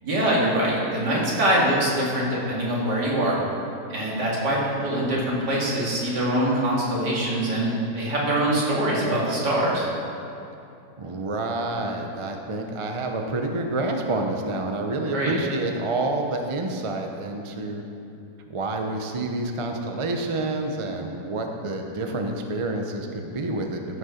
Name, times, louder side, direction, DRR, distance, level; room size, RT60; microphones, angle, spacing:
voice 1, 0.0-3.4 3.9-9.9 15.1-15.3, right 1 dB, 75° right, -5 dB, 3.0 m, -23 dB
voice 2, 11.0-17.8 18.5-24.0, right 2 dB, 30° right, 3 dB, 0.5 m, -28 dB
14.0 x 6.6 x 5.8 m, 2.7 s
omnidirectional pair, 1.8 m